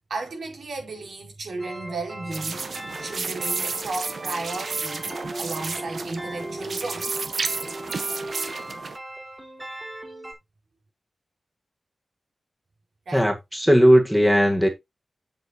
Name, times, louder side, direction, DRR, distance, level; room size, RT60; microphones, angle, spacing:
voice 1, 0.1-2.7 3.0-5.1 5.4-7.1 13.0-13.3, right 3 dB, 85° right, 5.1 m, -34 dB
sound 1, 1.6-10.3, right 1 dB, 20° right, 4.2 m, -37 dB
sound 2, 2.3-9.0, right 4 dB, 65° right, 1.4 m, -32 dB
voice 2, 13.1-14.7, equal, 5° right, 1.7 m, -17 dB
8.0 x 7.8 x 3.1 m
wide cardioid pair, 105°, 0 cm